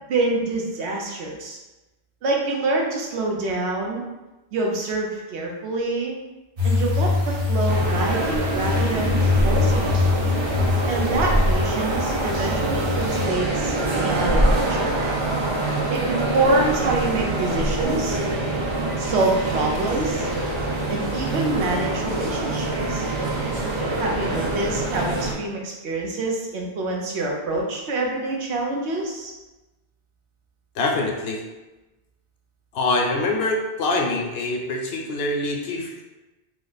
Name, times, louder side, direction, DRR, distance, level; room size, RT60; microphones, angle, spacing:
voice 1, 0.1-1.6 2.2-4.0 4.5-6.2 6.6-9.2 9.4-10.0 10.9-14.9 15.9-18.2 19.0-20.3 20.9-23.0 24.0-29.3, right 2 dB, 90° right, -1 dB, 1.0 m, -26 dB
sound 1, 6.6-13.3, left 4 dB, 60° right, 0.9 m, -24 dB
sound 2, 7.7-25.3, right 2 dB, 40° right, 0.4 m, -25 dB
voice 2, 30.8-31.4 32.7-36.0, left 2 dB, 70° left, 1 dB, 0.8 m, -24 dB
3.1 x 2.0 x 3.9 m, 1.1 s
omnidirectional pair, 1.1 m